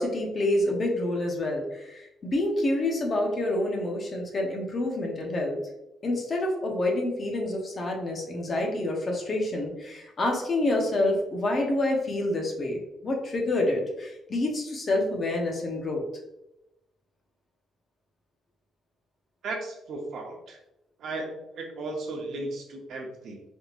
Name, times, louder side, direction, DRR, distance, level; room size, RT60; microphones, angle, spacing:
voice 1, 0.0-5.6 6.0-16.0, left 1 dB, 35° left, 1 dB, 0.8 m, -27 dB
voice 2, 19.4-20.6 21.0-23.4, right 2 dB, 65° right, 1 dB, 0.7 m, -35 dB
3.5 x 2.7 x 2.5 m, 0.91 s
cardioid pair, 120°, 0 cm